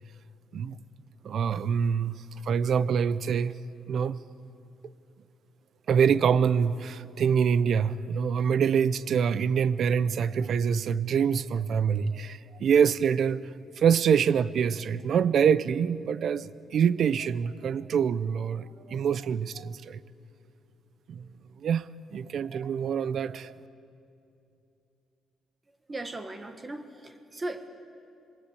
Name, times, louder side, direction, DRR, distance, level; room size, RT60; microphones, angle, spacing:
voice 1, 1.2-2.1 2.5-3.6 3.9-4.2 5.9-20.0 21.1-21.3 21.6-23.6, right 7 dB, 60° right, 0.7 m, -25 dB
voice 2, 25.9-27.7, right 2 dB, 25° right, 1.7 m, -37 dB
26.5 x 20.5 x 8.4 m
cardioid pair, 90°, 0 cm